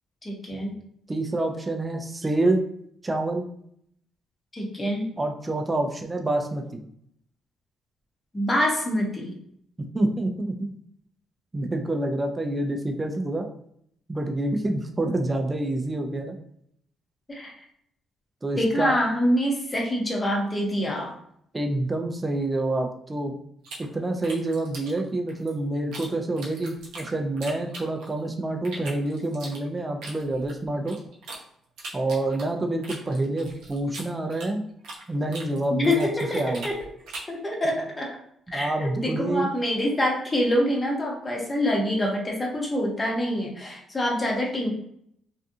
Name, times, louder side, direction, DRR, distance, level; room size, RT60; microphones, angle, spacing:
voice 1, 0.2-0.7 4.5-5.1 8.3-9.4 17.3-17.5 18.6-21.2 35.7-36.8 37.3-38.1 38.5-44.7, equal, 25° left, 0 dB, 0.8 m, -26 dB
voice 2, 1.1-2.7 3.0-3.5 5.2-6.8 9.8-10.7 11.5-13.4 14.1-16.4 18.4-19.0 21.5-23.4 23.8-31.0 31.9-34.6 35.1-36.1 36.3-36.7 38.5-39.5, right 2 dB, 20° right, 3 dB, 0.4 m, -27 dB
sound 1, 23.6-26.1 26.4-28.3 28.6-31.4 31.8-35.1 35.3-37.4, right 2 dB, 80° right, 0.7 m, -41 dB
2.6 x 2.3 x 2.6 m, 0.70 s
cardioid pair, 90°, 0 cm